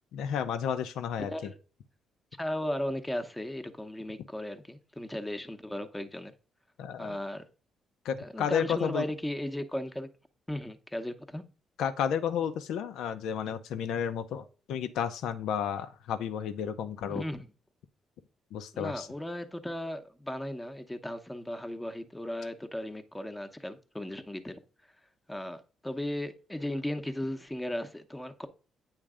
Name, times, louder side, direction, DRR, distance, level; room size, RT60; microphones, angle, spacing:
voice 1, 0.1-1.5 6.8-7.2 8.0-9.0 11.8-17.2 18.5-19.1, left 8 dB, 85° left, 0.6 m, -32 dB
voice 2, 1.2-1.6 2.4-6.3 7.0-7.5 8.2-10.1 10.5-11.4 17.1-17.5 18.7-24.6 25.3-28.5, left 1 dB, 10° left, 0.8 m, -36 dB
8.9 x 3.2 x 4.9 m
cardioid pair, 90°, 0 cm